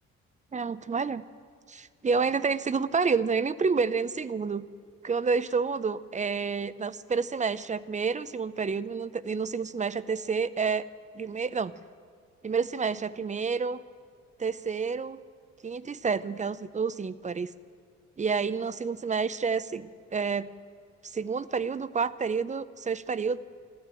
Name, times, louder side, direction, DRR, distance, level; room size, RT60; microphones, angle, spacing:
voice 1, 0.5-1.2 1.7-4.7 5.0-10.9 11.1-11.7 12.4-13.8 14.4-15.2 15.6-17.5 18.2-20.5 21.0-23.4, right 5 dB, 25° right, 16 dB, 0.6 m, -29 dB
13.0 x 12.5 x 9.0 m, 2.1 s
cardioid pair, 90°, 30 cm